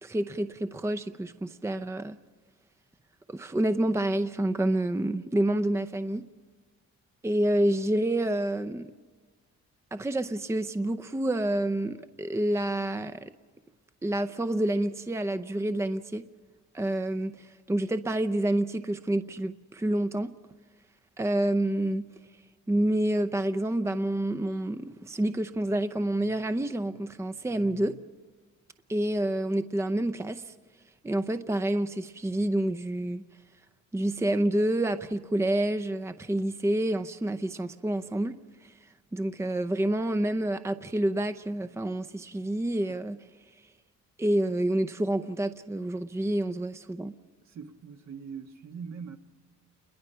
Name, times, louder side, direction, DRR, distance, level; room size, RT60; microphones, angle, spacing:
voice 1, 0.0-2.2 3.3-6.2 7.2-8.9 9.9-13.3 14.0-16.3 16.7-20.3 21.2-22.1 22.7-28.0 28.9-30.5 31.0-33.2 33.9-43.2 44.2-47.1, right 1 dB, 10° right, 0.7 m, -28 dB
voice 2, 47.4-49.2, right 6 dB, 65° right, 1.5 m, -42 dB
28.5 x 22.0 x 5.7 m
cardioid pair, 90°, 30 cm